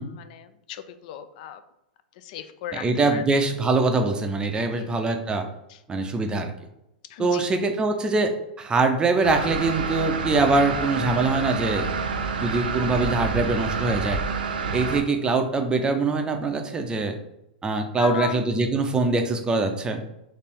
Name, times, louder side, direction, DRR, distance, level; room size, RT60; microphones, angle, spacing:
voice 1, 0.0-1.6 2.2-3.2 4.8-5.0 5.7-5.8 7.1-7.4 15.7-15.9 18.0-18.4, left 11 dB, 55° left, 11 dB, 0.4 m, -36 dB
voice 2, 2.8-5.5 5.9-6.5 7.2-11.9 12.4-14.2 14.7-17.2 17.6-20.0, right 3 dB, 15° right, 5 dB, 0.5 m, -23 dB
sound 1, 9.2-15.0, right 5 dB, 80° right, 0.6 m, -28 dB
3.4 x 2.6 x 4.2 m, 0.84 s
hypercardioid pair, 110°, 5 cm